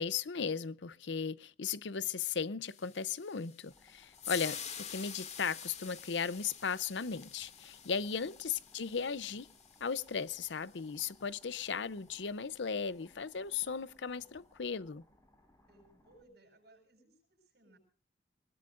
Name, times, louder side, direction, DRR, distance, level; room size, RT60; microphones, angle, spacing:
voice 1, 0.0-9.5 9.8-15.0, left 6 dB, 85° left, 0.7 m, -36 dB
sound 1, 2.7-11.0, left 7 dB, 40° left, 2.2 m, -47 dB
sound 2, 3.7-16.2, left 1 dB, 20° left, 5.0 m, -66 dB
voice 2, 15.7-17.8, right 1 dB, 65° right, 7.7 m, -63 dB
24.0 x 20.5 x 2.5 m
head